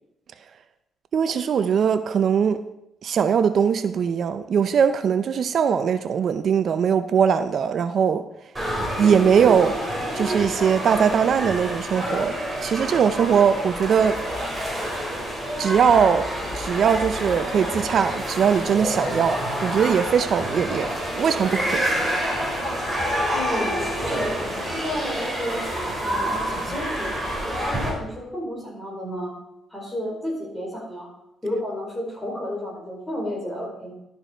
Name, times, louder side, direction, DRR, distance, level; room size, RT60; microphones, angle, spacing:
voice 1, 1.1-2.6 3.0-8.2 9.0-9.8 10.1-14.2 15.6-16.3 16.5-21.9, right 7 dB, 60° right, 0.5 m, -21 dB
sound 1, 8.5-27.9, equal, 15° right, 3.9 m, -28 dB
voice 2, 23.3-24.3 24.7-25.6 26.0-27.1 27.5-29.3 29.7-31.1 31.4-33.9, left 1 dB, 10° left, 4.6 m, -32 dB
12.0 x 6.8 x 4.5 m
cardioid pair, 90°, 0 cm